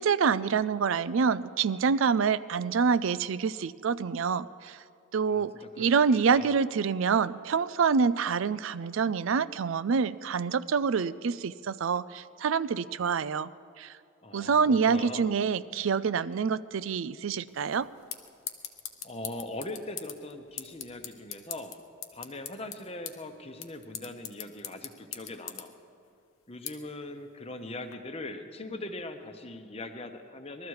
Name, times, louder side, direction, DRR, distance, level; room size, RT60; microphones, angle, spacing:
voice 1, 0.0-4.8 5.1-13.5 13.8-13.9 14.3-17.9, right 5 dB, 75° right, 16 dB, 0.4 m, -26 dB
voice 2, 5.3-5.9 6.3-6.6 14.2-15.3 19.0-21.8 22.1-25.7 26.5-30.7, left 2 dB, 30° left, 7 dB, 0.9 m, -41 dB
sound 1, 17.5-27.9, left 10 dB, 90° left, 1.0 m, -44 dB
21.0 x 13.5 x 4.8 m, 2.5 s
head